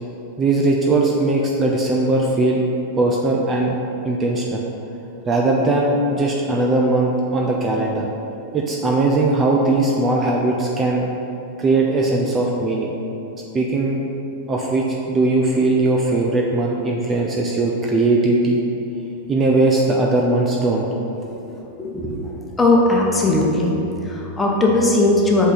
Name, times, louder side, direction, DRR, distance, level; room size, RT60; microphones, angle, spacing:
voice 1, 0.4-2.6 3.0-3.7 4.0-4.6 5.3-8.1 8.5-11.1 11.6-12.9 13.5-14.0 14.5-18.6 19.3-20.9, right 2 dB, 25° right, -1 dB, 0.7 m, -19 dB
voice 2, 21.8-23.7 24.0-25.5, left 2 dB, 10° left, -2 dB, 1.2 m, -18 dB
8.1 x 3.9 x 5.8 m, 2.9 s
figure-of-eight pair, 90°, 0 cm